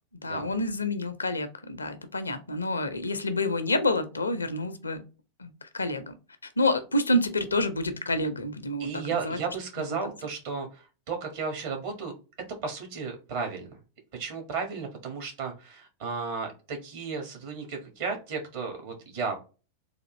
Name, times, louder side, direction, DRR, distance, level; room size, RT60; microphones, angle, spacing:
voice 1, 0.1-5.0 5.4-6.1 6.4-9.4, left 1 dB, 80° left, 11 dB, 0.5 m, -28 dB
voice 2, 8.8-12.1 12.6-13.7 14.1-19.4, right 5 dB, 50° right, 3 dB, 1.4 m, -34 dB
3.5 x 2.5 x 3.0 m, 0.32 s
figure-of-eight pair, 90°, 0 cm